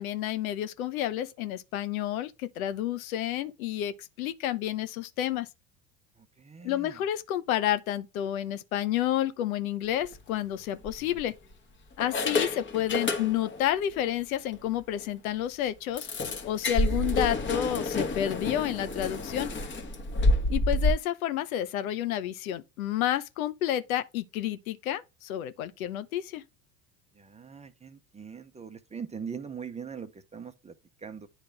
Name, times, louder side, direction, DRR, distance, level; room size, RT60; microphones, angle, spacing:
voice 1, 0.0-5.5 6.6-11.3 12.0-16.1 16.4-19.5 20.5-26.4, left 12 dB, 70° left, 0.9 m, -30 dB
voice 2, 6.2-7.0 12.2-12.4 27.2-31.3, right 6 dB, 15° right, 0.9 m, -42 dB
sound 1, 9.9-10.2 10.8-11.5 12.0-13.7 14.0-14.1 14.5-14.6 15.0-15.1 16.0-20.9, left 2 dB, 25° left, 1.4 m, -29 dB
9.9 x 3.3 x 3.3 m
hypercardioid pair, 80°, 43 cm